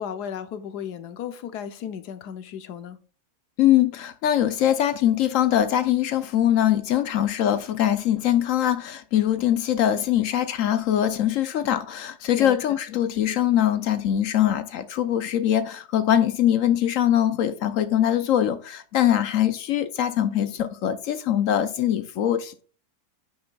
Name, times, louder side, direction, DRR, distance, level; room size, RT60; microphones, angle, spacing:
voice 1, 0.0-3.0 12.3-12.8, left 8 dB, 90° left, 1.4 m, -35 dB
voice 2, 3.6-22.6, left 11 dB, 65° left, 0.9 m, -22 dB
9.8 x 6.3 x 2.3 m
omnidirectional pair, 1.7 m